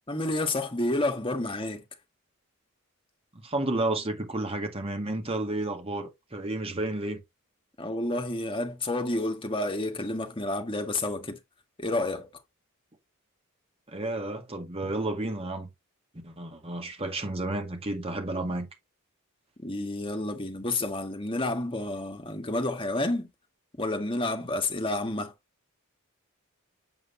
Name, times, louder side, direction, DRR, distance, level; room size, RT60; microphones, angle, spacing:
voice 1, 0.1-1.8 7.8-11.4 11.8-12.3 19.6-23.3 23.8-25.3, left 2 dB, 25° left, 1.5 m, -30 dB
voice 2, 3.4-7.2 13.9-15.7 16.2-18.7, right 2 dB, 25° right, 1.8 m, -31 dB
7.6 x 7.3 x 2.7 m
head